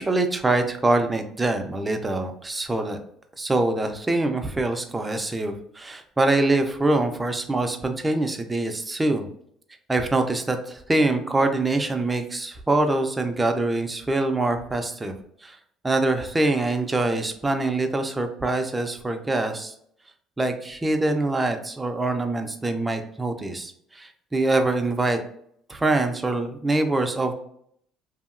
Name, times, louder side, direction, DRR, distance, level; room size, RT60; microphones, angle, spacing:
voice 1, 0.0-3.0 3.4-9.3 9.9-15.1 15.4-15.6 15.8-19.7 20.4-25.2 25.7-27.3, right 2 dB, 15° right, 5 dB, 0.4 m, -24 dB
2.8 x 2.6 x 2.5 m, 0.67 s
cardioid pair, 110°, 0 cm